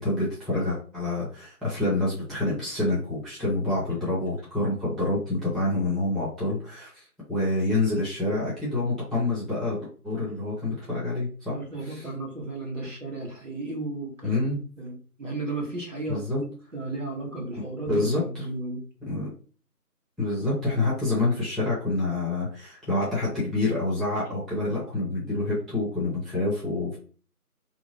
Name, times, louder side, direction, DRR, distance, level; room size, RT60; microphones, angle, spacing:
voice 1, 0.0-11.5 11.8-12.1 14.2-14.7 16.1-16.4 17.6-18.4 19.1-19.3 20.2-27.0, left 2 dB, ahead, -8 dB, 0.7 m, -27 dB
voice 2, 11.5-14.4 14.8-18.8, right 2 dB, 50° right, -3 dB, 1.5 m, -34 dB
2.9 x 2.1 x 3.9 m, 0.40 s
figure-of-eight pair, 180°, 46 cm